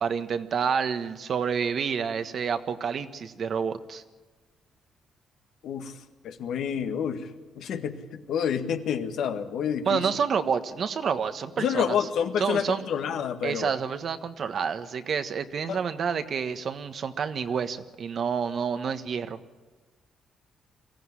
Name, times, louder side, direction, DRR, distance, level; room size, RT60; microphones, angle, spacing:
voice 1, 0.0-4.0 9.8-12.1 12.4-12.8 13.4-19.4, right 6 dB, 55° right, 9 dB, 1.4 m, -29 dB
voice 2, 5.6-5.9 6.2-7.3 7.6-10.1 11.6-13.7 15.7-15.8, left 8 dB, 75° left, 7 dB, 1.7 m, -28 dB
23.0 x 16.0 x 9.9 m, 1.3 s
cardioid pair, 90°, 0 cm